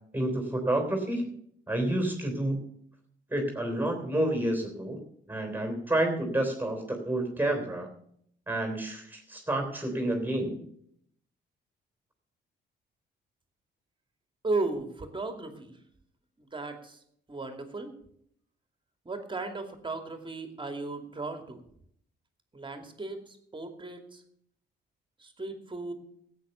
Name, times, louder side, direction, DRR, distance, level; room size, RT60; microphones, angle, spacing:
voice 1, 0.1-1.3 1.7-2.7 3.3-5.0 5.3-7.9 8.5-10.6, right 1 dB, 10° right, 4 dB, 3.4 m, -29 dB
voice 2, 14.4-15.8 16.4-17.0 17.3-17.9 19.0-21.6 22.5-24.2 25.2-25.9, right 3 dB, 25° right, 5 dB, 2.5 m, -35 dB
14.0 x 8.7 x 6.8 m, 0.68 s
cardioid pair, 90°, 20 cm